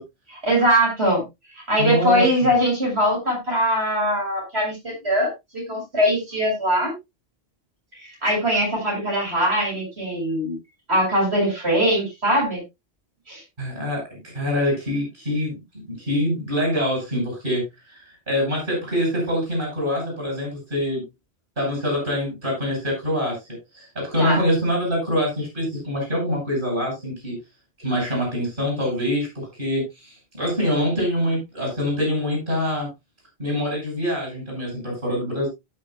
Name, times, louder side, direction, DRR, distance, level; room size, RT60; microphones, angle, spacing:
voice 1, 0.3-1.2 1.5-6.9 8.2-10.6 10.9-12.6 13.3-13.4 24.2-24.4, equal, 80° right, -2 dB, 6.6 m, -21 dB
voice 2, 1.8-2.5 13.6-15.6 15.9-17.6 17.9-21.0 21.6-23.4 23.7-27.4 27.8-32.9 33.4-35.5, left 1 dB, 55° right, -2 dB, 6.3 m, -25 dB
17.0 x 6.6 x 2.3 m, 0.21 s
omnidirectional pair, 1.1 m